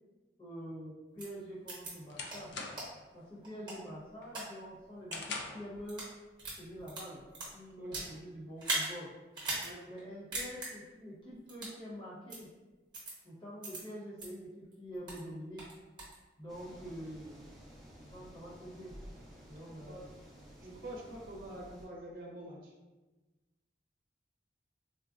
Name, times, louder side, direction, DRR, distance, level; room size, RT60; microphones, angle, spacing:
voice 1, 0.4-2.5 3.1-6.1 6.6-7.2 7.5-9.1 9.9-12.5 13.2-15.7 16.4-17.5 18.1-18.9 19.5-20.1, equal, 30° left, -8 dB, 1.0 m, -46 dB
sound 1, 1.2-1.3 1.7-1.9 2.3-2.4 2.8-2.9 3.4-4.4 5.0-5.2 5.7-6.1 6.4-8.1 8.6-8.9 9.3-9.7 10.0-10.1 10.3-10.7 11.5-11.8 12.3-12.4 12.9-13.1 13.6-13.8 14.2-14.3 14.7-15.2 15.6-16.1, right 2 dB, 25° right, 0.9 m, -38 dB
sound 2, 1.3-3.1 3.5-3.8 4.2-5.8, left 3 dB, 75° left, 0.4 m, -43 dB
sound 3, 16.5-21.9, equal, ahead, 0.7 m, -53 dB
voice 2, 20.6-22.7, right 1 dB, 55° right, -2 dB, 0.6 m, -46 dB
3.8 x 2.1 x 2.4 m, 1.2 s
head